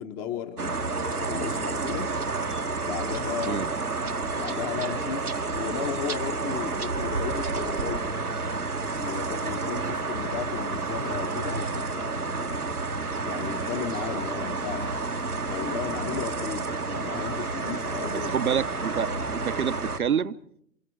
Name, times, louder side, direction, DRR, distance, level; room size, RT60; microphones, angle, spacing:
voice 1, 0.0-2.1 2.8-8.1 8.9-12.6 13.2-15.0 15.5-18.4 18.6-18.7, left 8 dB, 30° left, 1.6 m, -35 dB
sound 1, 0.6-20.0, right 3 dB, 90° right, 1.3 m, -30 dB
voice 2, 18.0-20.3, right 8 dB, 75° right, 1.0 m, -28 dB
28.5 x 27.5 x 3.4 m
figure-of-eight pair, 110°, 44 cm